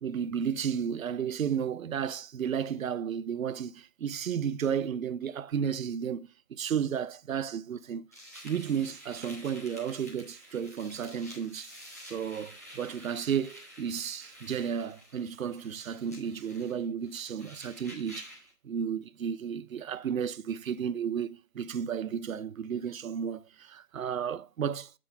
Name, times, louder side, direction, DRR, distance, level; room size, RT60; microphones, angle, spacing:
voice 1, 0.0-8.1 8.4-11.7 12.0-18.3 18.6-24.9, right 8 dB, 60° right, 0.5 m, -33 dB
sound 1, 8.1-18.5, equal, 10° left, 0.6 m, -50 dB
7.4 x 3.9 x 5.4 m
figure-of-eight pair, 145°, 48 cm